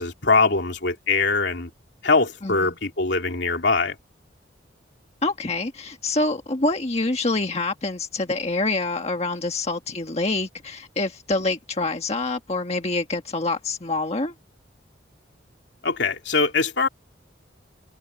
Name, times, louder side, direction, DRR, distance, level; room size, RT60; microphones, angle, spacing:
voice 1, 0.0-1.7 2.0-4.0 15.8-16.9, left 4 dB, 70° left, 2.9 m, -22 dB
voice 2, 2.4-2.7 5.2-14.3, left 2 dB, 35° left, 1.5 m, -26 dB
head